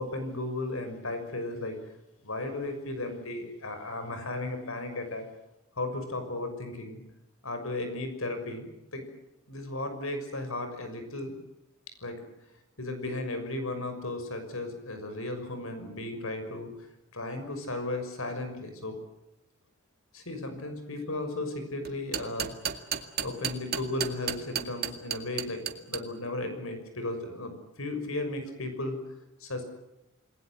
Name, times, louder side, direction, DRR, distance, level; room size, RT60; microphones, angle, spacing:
voice 1, 0.0-1.8 2.2-5.3 5.8-7.0 7.4-9.0 9.5-11.3 12.0-12.2 12.8-16.7 17.1-19.0 20.1-22.5 22.9-25.6 25.9-29.0 29.4-29.7, left 2 dB, 75° left, 7 dB, 6.3 m, -35 dB
sound 1, 21.8-26.0, right 9 dB, 50° right, 2.1 m, -32 dB
29.0 x 21.0 x 8.0 m, 0.90 s
head